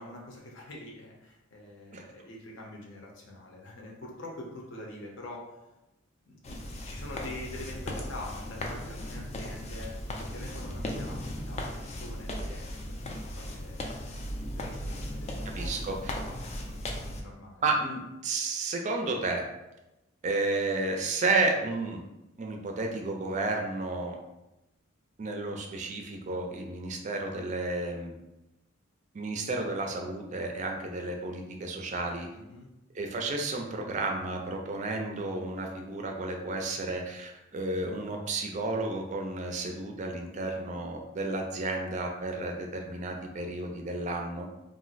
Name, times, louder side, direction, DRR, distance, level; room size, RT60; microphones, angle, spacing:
voice 1, 0.0-5.6 6.3-12.7 13.0-13.8 14.6-17.7 32.3-32.7, left 1 dB, 65° left, -1 dB, 0.7 m, -45 dB
sound 1, 6.4-17.2, left 1 dB, 35° left, 0.3 m, -37 dB
voice 2, 15.5-16.1 17.6-19.5 20.2-22.0 22.4-24.2 25.2-28.1 29.1-32.3 32.9-44.5, right 2 dB, 35° right, 2 dB, 0.4 m, -32 dB
2.5 x 2.0 x 3.9 m, 0.95 s
head